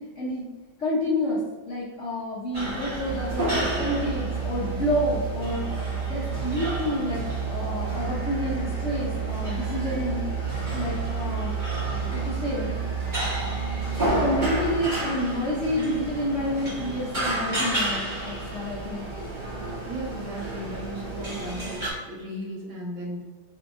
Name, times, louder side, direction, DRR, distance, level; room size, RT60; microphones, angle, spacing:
voice 1, 0.8-10.2 10.7-11.6 12.1-12.7 14.0-19.1, left 1 dB, 60° left, -6 dB, 0.8 m, -29 dB
sound 1, 2.5-21.9, right 1 dB, 25° right, 1.4 m, -32 dB
Musical instrument, 3.0-15.0, right 7 dB, 70° right, 1.2 m, -31 dB
voice 2, 19.9-23.2, right 1 dB, 85° right, -3 dB, 2.0 m, -36 dB
4.1 x 3.4 x 3.5 m, 1.3 s
omnidirectional pair, 2.2 m